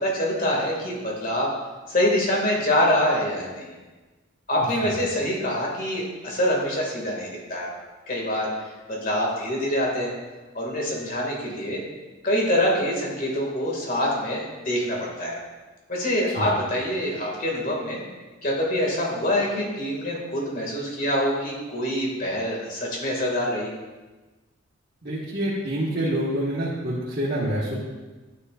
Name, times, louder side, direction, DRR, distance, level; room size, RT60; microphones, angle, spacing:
voice 1, 0.0-1.5 1.9-3.7 4.5-7.7 8.1-8.5 8.9-10.1 10.5-11.8 12.2-15.4 15.9-18.0 18.4-23.7, left 1 dB, 40° left, -2 dB, 2.3 m, -25 dB
voice 2, 4.5-4.9 16.3-16.5 25.0-27.8, right 1 dB, 50° right, -8 dB, 1.6 m, -27 dB
12.0 x 9.4 x 2.5 m, 1.2 s
head